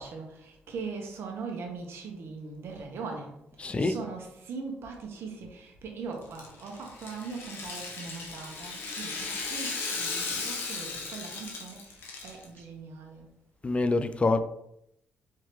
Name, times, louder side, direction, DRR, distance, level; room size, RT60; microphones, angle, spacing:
voice 1, 0.0-13.4, right 4 dB, 70° right, 1.1 m, -40 dB
voice 2, 3.6-4.0 13.6-14.4, left 3 dB, 30° left, 0.4 m, -25 dB
Rattle (instrument), 6.2-12.4, left 4 dB, 70° left, 1.0 m, -36 dB
4.5 x 3.6 x 3.1 m
supercardioid pair, 60°, 4 cm